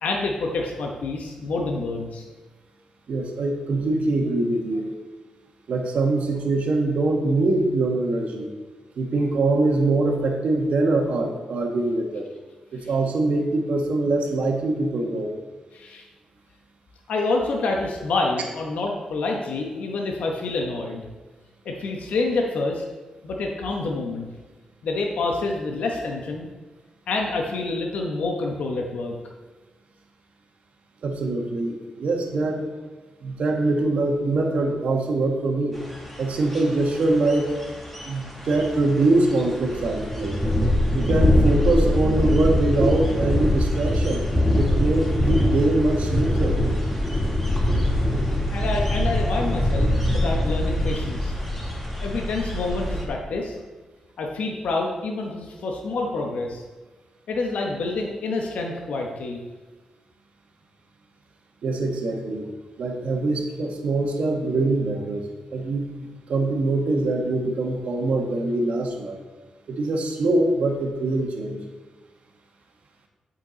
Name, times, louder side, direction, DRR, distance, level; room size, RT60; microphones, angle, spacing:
voice 1, 0.0-2.2 12.8-12.9 15.7-16.1 17.1-21.1 21.6-22.8 23.2-24.3 24.8-26.5 27.1-29.2 48.5-51.3 52.0-53.6 54.2-56.6 57.3-59.4, left 3 dB, 80° left, 1 dB, 0.9 m, -27 dB
voice 2, 3.1-4.9 5.7-8.5 9.0-12.3 12.7-15.3 31.0-32.6 33.2-35.8 36.2-37.5 38.1-40.4 40.9-44.2 44.6-46.6 61.6-62.5 62.8-65.3 65.5-65.9 66.3-69.2 69.7-71.6, right 2 dB, 65° right, 2 dB, 1.3 m, -23 dB
sound 1, 35.7-53.0, left 1 dB, 5° left, 1.6 m, -23 dB
8.3 x 5.8 x 3.9 m, 1.3 s
cardioid pair, 90°, 2 cm